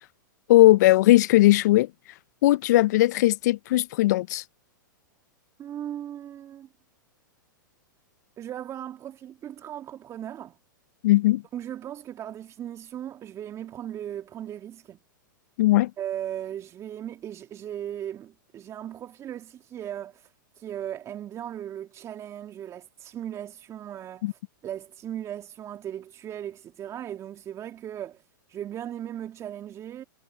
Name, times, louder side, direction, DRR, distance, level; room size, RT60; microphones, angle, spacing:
voice 1, 0.5-1.9 2.4-4.4 11.0-11.4 15.6-15.9 24.2-24.3, left 16 dB, 55° left, 0.9 m, -18 dB
voice 2, 5.6-6.7 8.4-10.6 11.5-15.0 16.0-30.0, right 10 dB, 25° right, 2.5 m, -37 dB
hypercardioid pair, 105°, 11 cm